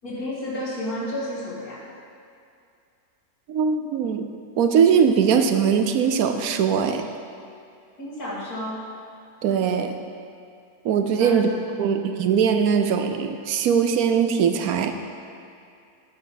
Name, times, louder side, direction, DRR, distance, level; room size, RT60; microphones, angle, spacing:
voice 1, 0.0-1.8 8.0-8.8 11.2-11.4 11.8-12.0, left 1 dB, 80° left, -7 dB, 2.8 m, -31 dB
voice 2, 3.5-4.3 4.6-7.1 9.4-10.0 10.8-11.5 11.8-14.9, right 7 dB, 80° right, 7 dB, 1.1 m, -21 dB
10.5 x 9.9 x 3.9 m, 2.5 s
omnidirectional pair, 1.5 m